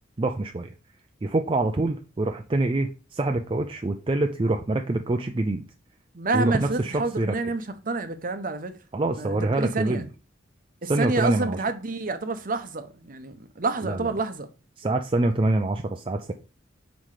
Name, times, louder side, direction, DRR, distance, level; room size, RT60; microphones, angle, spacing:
voice 1, 0.2-0.7 1.2-5.6 6.3-7.3 8.9-10.1 10.8-11.6 13.8-14.1 14.8-16.3, right 2 dB, 25° right, 0.4 m, -25 dB
voice 2, 6.1-8.7 9.1-10.1 10.8-14.5, right 3 dB, 45° right, 0.8 m, -28 dB
5.7 x 5.1 x 4.8 m
head